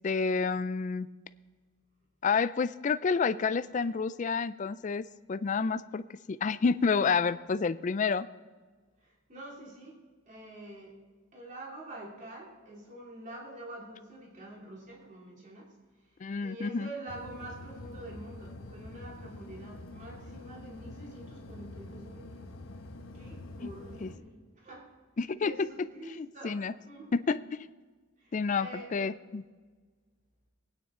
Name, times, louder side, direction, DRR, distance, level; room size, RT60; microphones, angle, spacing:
voice 1, 0.0-1.1 2.2-6.0 6.3-8.3 16.2-16.9 23.6-23.7 24.0-24.1 25.2-25.5 26.2-26.7 27.1-27.7 28.3-29.4, left 5 dB, 35° left, 13 dB, 0.4 m, -29 dB
voice 2, 3.3-3.9 9.0-10.0 10.3-11.0 11.3-15.7 16.4-22.5 23.1-24.9 25.4-27.1 28.2-29.1, right 1 dB, 35° right, -2 dB, 2.8 m, -46 dB
sound 1, 17.1-24.2, left 2 dB, 75° left, 1.0 m, -46 dB
20.5 x 9.4 x 3.7 m, 1.4 s
head